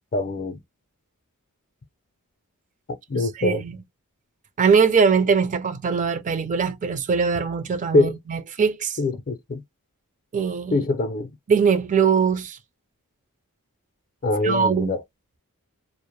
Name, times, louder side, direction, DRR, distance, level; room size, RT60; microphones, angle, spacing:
voice 1, 0.1-0.6 3.1-3.6 7.9-8.2 9.0-9.6 10.7-11.4 14.2-15.0, left 2 dB, 40° left, 0.4 m, -23 dB
voice 2, 3.1-3.7 4.6-9.0 10.3-10.8 11.5-12.6 14.4-15.0, right 6 dB, 35° right, 0.4 m, -21 dB
2.1 x 2.0 x 3.0 m
head